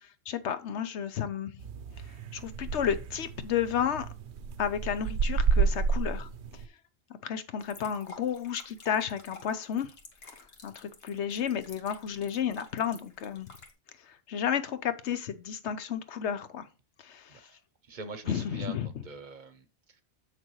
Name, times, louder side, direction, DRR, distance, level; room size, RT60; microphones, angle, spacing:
voice 1, 0.0-1.5 2.3-4.1 4.6-6.3 7.1-9.9 10.6-13.5 14.1-16.7 17.0-17.4 18.3-18.9, left 8 dB, 75° left, 1.1 m, -32 dB
sound 1, 1.6-6.6, right 5 dB, 70° right, 0.9 m, -30 dB
sound 2, 7.6-13.7, left 3 dB, 60° left, 1.5 m, -51 dB
voice 2, 17.9-19.6, right 3 dB, 45° right, 0.9 m, -43 dB
7.6 x 6.3 x 3.1 m
omnidirectional pair, 1.2 m